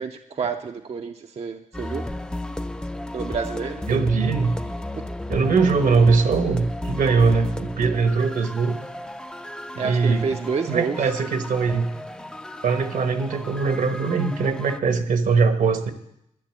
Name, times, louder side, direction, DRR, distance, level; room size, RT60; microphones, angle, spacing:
voice 1, 0.0-2.1 3.1-3.8 5.0-5.1 9.8-11.1, right 5 dB, 45° right, 5 dB, 0.6 m, -29 dB
sound 1, 1.7-14.8, left 1 dB, 5° left, 0.5 m, -34 dB
voice 2, 3.9-4.5 5.3-8.8 9.7-10.4 10.7-11.9 12.6-15.9, right 4 dB, 75° right, 8 dB, 1.3 m, -21 dB
11.5 x 6.8 x 8.9 m, 0.79 s
cardioid pair, 100°, 14 cm